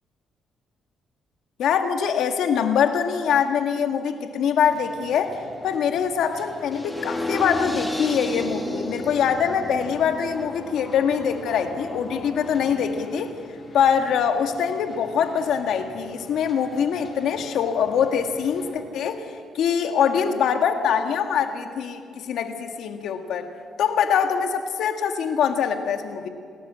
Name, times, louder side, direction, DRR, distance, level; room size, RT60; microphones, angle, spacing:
voice 1, 1.6-5.4 5.6-13.4 13.7-23.5 23.8-26.3, left 7 dB, 75° left, 6 dB, 1.8 m, -23 dB
sound 1, 4.6-18.7, left 1 dB, 30° left, 6.6 m, -46 dB
sound 2, 6.7-12.7, left 1 dB, 10° left, 2.6 m, -32 dB
28.5 x 13.0 x 7.6 m, 2.2 s
cardioid pair, 90°, 0 cm